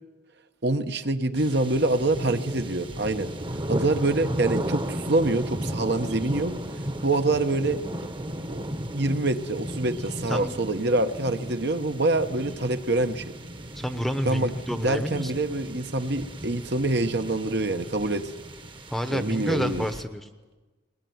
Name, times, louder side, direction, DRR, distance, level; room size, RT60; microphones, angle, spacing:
voice 1, 0.6-3.3 3.7-6.5 7.0-7.8 8.5-8.6 8.9-13.3 14.2-14.5 14.8-18.3 19.1-19.9, right 2 dB, 55° right, 8 dB, 1.2 m, -25 dB
sound 1, 1.4-20.0, right 1 dB, 25° right, 1.2 m, -35 dB
voice 2, 13.7-15.3 18.9-20.3, equal, ahead, 9 dB, 1.0 m, -29 dB
21.5 x 20.0 x 9.5 m, 1.2 s
head